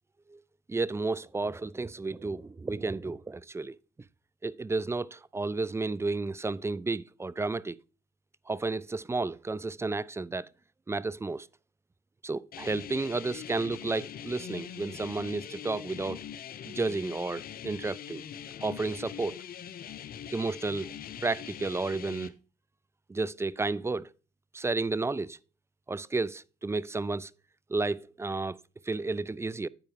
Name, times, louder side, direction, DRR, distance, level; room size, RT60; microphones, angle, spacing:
voice 1, 0.7-3.8 4.4-7.8 8.5-10.5 10.9-11.5 12.2-16.2 16.6-18.2 18.6-19.4 20.3-20.9 21.2-22.3 23.1-24.1 24.5-25.4 25.9-27.3 27.7-28.6 28.8-29.7, right 3 dB, 15° right, 0.4 m, -32 dB
sound 1, 12.5-22.3, left 9 dB, 55° left, 0.7 m, -42 dB
8.9 x 4.8 x 4.6 m
supercardioid pair, 65°, 18 cm